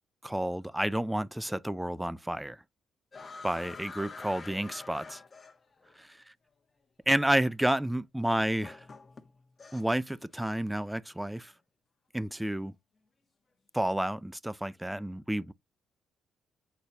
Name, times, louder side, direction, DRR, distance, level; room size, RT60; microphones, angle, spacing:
voice 1, 0.2-2.6 3.4-5.2 6.0-6.2 7.1-8.9 9.7-11.5 12.1-12.7 13.7-15.5, right 1 dB, 5° right, 0.4 m, -30 dB
sound 1, 3.1-5.9 7.0-7.1 8.3-10.1 10.4-10.8, left 4 dB, 30° left, 1.1 m, -47 dB
8.0 x 4.1 x 2.9 m
cardioid pair, 90°, 0 cm